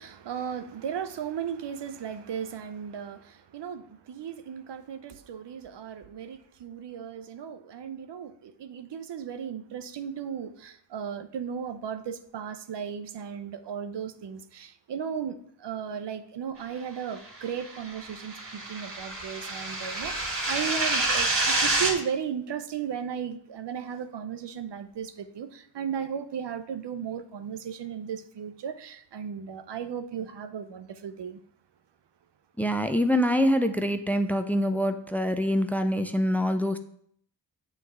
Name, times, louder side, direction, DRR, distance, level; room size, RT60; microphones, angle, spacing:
voice 1, 0.0-31.4, right 7 dB, 75° right, 0.6 m, -36 dB
sound 1, 17.5-21.9, right 2 dB, 50° right, 2.1 m, -28 dB
voice 2, 32.6-36.8, equal, 5° left, 0.5 m, -25 dB
6.9 x 3.2 x 4.7 m
cardioid pair, 50°, 43 cm